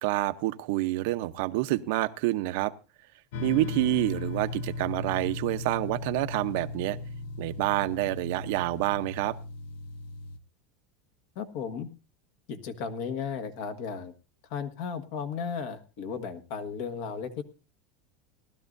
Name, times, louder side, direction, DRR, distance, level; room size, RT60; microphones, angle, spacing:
voice 1, 0.0-2.7 3.4-7.0 7.4-9.4, right 18 dB, 65° right, 11 dB, 0.7 m, -28 dB
sound 1, 3.3-10.4, left 3 dB, 80° left, 0.8 m, -37 dB
voice 2, 11.3-11.9 12.5-14.1 14.5-17.4, left 6 dB, 60° left, 9 dB, 1.5 m, -35 dB
19.0 x 12.5 x 2.6 m, 0.32 s
supercardioid pair, 145°, 0 cm